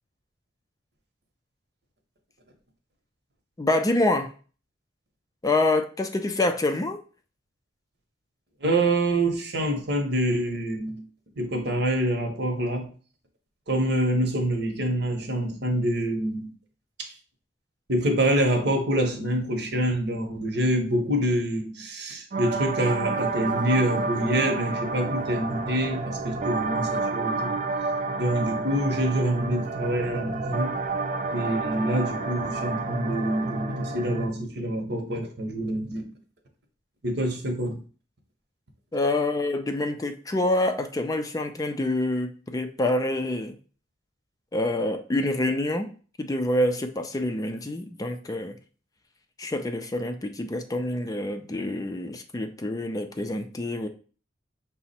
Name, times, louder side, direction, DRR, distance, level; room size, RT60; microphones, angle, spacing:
voice 1, 3.6-4.3 5.4-7.0 38.9-43.6 44.5-45.9 46.2-48.6 49.4-53.9, left 1 dB, 20° left, 0.4 m, -26 dB
voice 2, 8.6-11.0 11.4-12.9 13.7-16.5 17.0-17.1 17.9-27.5 28.2-30.8 31.3-36.1 37.0-37.8, right 1 dB, 65° right, 0.9 m, -26 dB
sound 1, 22.3-34.3, right 3 dB, 45° right, 0.5 m, -29 dB
5.7 x 2.1 x 4.1 m
head